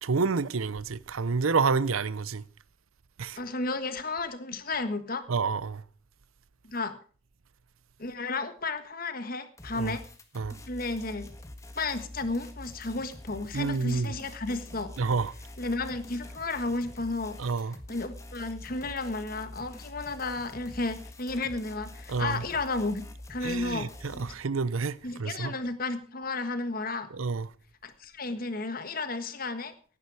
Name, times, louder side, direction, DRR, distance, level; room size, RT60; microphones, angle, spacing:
voice 1, 0.0-2.4 3.2-3.4 5.3-5.8 9.7-10.0 10.3-10.6 13.5-14.1 15.0-15.3 17.4-17.8 22.1-22.4 23.4-25.5 27.1-27.5, right 4 dB, 90° right, 0.7 m, -29 dB
voice 2, 3.3-5.3 6.6-7.0 8.0-10.0 10.7-11.3 11.8-14.9 15.6-17.4 17.9-23.0 23.3-24.2 25.0-27.1 27.8-29.7, left 3 dB, 45° left, 1.5 m, -33 dB
sound 1, 9.6-24.3, left 1 dB, 15° left, 1.5 m, -46 dB
17.0 x 9.9 x 4.8 m
head